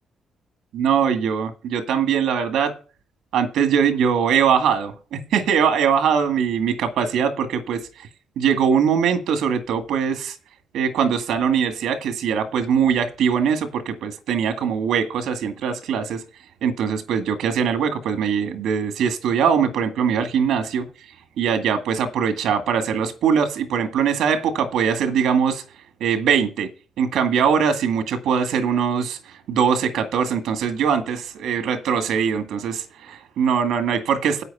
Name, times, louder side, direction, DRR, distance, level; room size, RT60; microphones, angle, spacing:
voice 1, 0.7-2.8 3.3-8.1 8.4-10.4 10.7-16.2 16.6-20.9 21.4-25.6 26.0-26.7 27.0-29.2 29.5-34.4, right 7 dB, 75° right, 2.0 m, -21 dB
9.2 x 8.1 x 5.6 m
cardioid pair, 165°, 0 cm